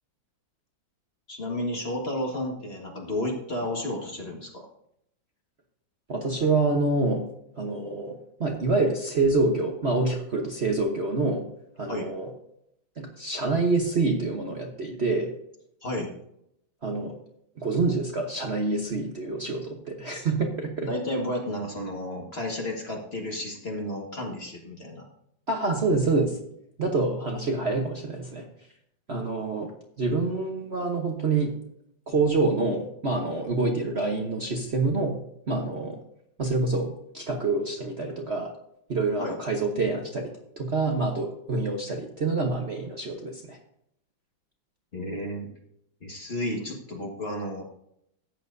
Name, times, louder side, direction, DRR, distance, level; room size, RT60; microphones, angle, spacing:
voice 1, 1.3-4.7 11.9-12.1 15.8-16.1 20.8-25.0 39.2-39.4 44.9-45.5 46.0-47.6, left 1 dB, 35° left, 0 dB, 1.8 m, -32 dB
voice 2, 6.1-7.2 7.6-11.4 11.8-12.3 13.0-15.3 16.8-17.1 17.6-20.9 25.5-26.4 26.8-28.4 29.1-29.7 30.0-31.5 32.1-35.2 35.5-36.0 36.4-38.5 38.9-40.3 40.6-43.6, right 3 dB, 40° right, 1 dB, 1.1 m, -26 dB
14.0 x 9.0 x 2.7 m, 0.74 s
omnidirectional pair, 2.1 m